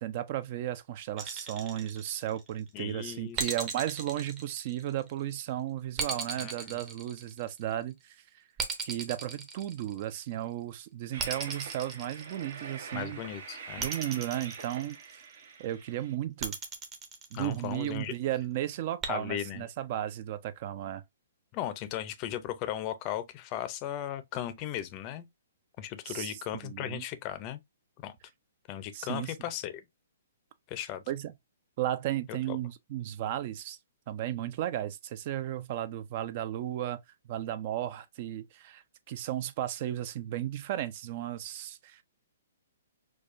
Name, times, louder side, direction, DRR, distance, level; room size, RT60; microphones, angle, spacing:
voice 1, 0.0-8.2 8.8-13.2 13.8-15.2 15.6-16.6 17.3-21.0 26.1-27.0 28.9-29.3 31.1-31.3 31.8-33.8 34.1-37.0 37.3-42.0, right 12 dB, 45° right, 0.5 m, -34 dB
sound 1, 1.2-2.6 3.4-5.2 6.0-7.7 8.6-10.3 11.2-12.8 13.8-15.3 16.4-17.9 19.0-19.1, right 4 dB, 20° right, 0.8 m, -37 dB
voice 2, 2.7-3.5 6.4-6.5 12.9-13.9 17.3-18.1 19.1-19.6 21.5-25.3 25.8-27.6 28.0-28.2 28.7-29.8 30.7-31.0 32.3-32.6, left 11 dB, 30° left, 0.5 m, -36 dB
Train, 11.1-16.1, right 5 dB, 60° right, 1.0 m, -45 dB
4.6 x 2.3 x 2.5 m
hypercardioid pair, 145°, 0 cm